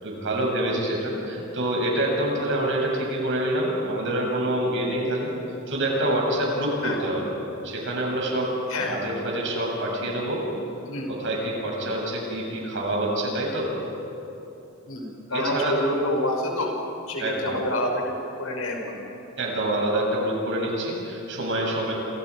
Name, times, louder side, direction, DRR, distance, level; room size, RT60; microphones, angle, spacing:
voice 1, 0.0-5.3 5.7-7.3 7.6-10.4 11.1-13.7 15.3-15.8 17.2-17.6 19.4-21.9, right 1 dB, 60° right, -1 dB, 7.5 m, -26 dB
voice 2, 15.3-16.7 17.1-19.0, left 1 dB, 85° left, 1 dB, 5.8 m, -27 dB
28.5 x 28.5 x 5.1 m, 3.0 s
head